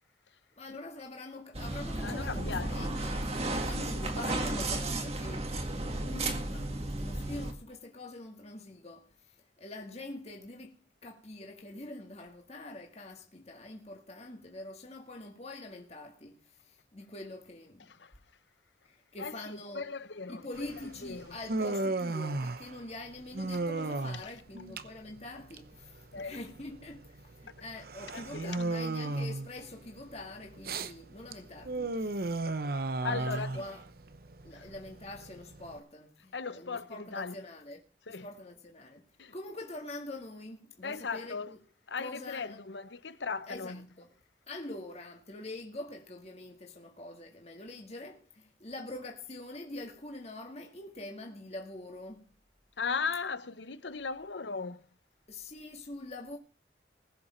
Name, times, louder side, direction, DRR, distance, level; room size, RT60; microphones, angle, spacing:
voice 1, 0.6-3.3 3.6-5.5 6.0-18.0 18.8-19.9 20.3-32.4 33.1-33.8 34.4-37.8 38.1-41.6 42.0-42.6 43.5-44.1 44.5-52.3 55.3-56.4, left 2 dB, 35° left, 2.0 m, -45 dB
sound 1, 1.5-7.5, right 2 dB, 35° right, 1.9 m, -33 dB
voice 2, 2.0-2.9 4.0-4.1 18.0-18.1 19.2-19.3 19.7-20.5 21.0-21.4 26.1-26.4 28.1-28.6 33.0-33.5 34.5-34.6 36.3-37.3 38.1-38.3 39.2-39.3 40.8-41.5 41.9-43.8 52.8-54.8, left 5 dB, 80° left, 0.9 m, -37 dB
Human voice, 20.5-35.8, right 2 dB, 55° right, 0.8 m, -36 dB
20.5 x 7.0 x 4.4 m
head